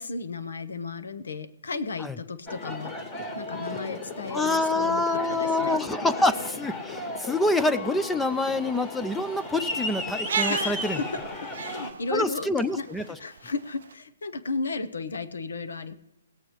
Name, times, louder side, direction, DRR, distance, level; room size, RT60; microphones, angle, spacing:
voice 1, 0.0-2.9 3.3-5.8 10.5-11.2 11.6-12.9 13.2-15.9, left 4 dB, 80° left, 10 dB, 1.0 m, -34 dB
Aircraft, 2.5-11.9, left 2 dB, 25° left, 1.6 m, -35 dB
voice 2, 4.3-11.0 12.1-13.0, left 2 dB, 5° left, 11 dB, 0.4 m, -26 dB
sound 1, 8.2-13.9, right 8 dB, 60° right, 0.3 m, -36 dB
18.5 x 8.4 x 3.1 m, 0.91 s
hypercardioid pair, 155°, 0 cm